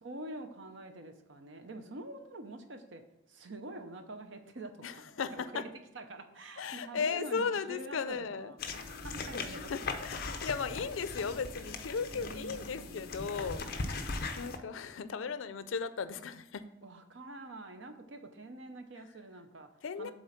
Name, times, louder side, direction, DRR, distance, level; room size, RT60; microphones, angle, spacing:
voice 1, 0.0-3.0 3.3-5.7 5.9-9.7 12.1-13.0 16.8-19.7 20.0-20.1, right 2 dB, 70° right, 7 dB, 0.8 m, -46 dB
voice 2, 4.8-5.6 6.6-8.5 9.3-13.9 14.4-16.7 19.8-20.1, left 5 dB, 85° left, 13 dB, 0.5 m, -36 dB
sound 1, 8.6-14.6, left 3 dB, 50° left, 0.7 m, -39 dB
7.2 x 3.9 x 5.8 m, 0.89 s
head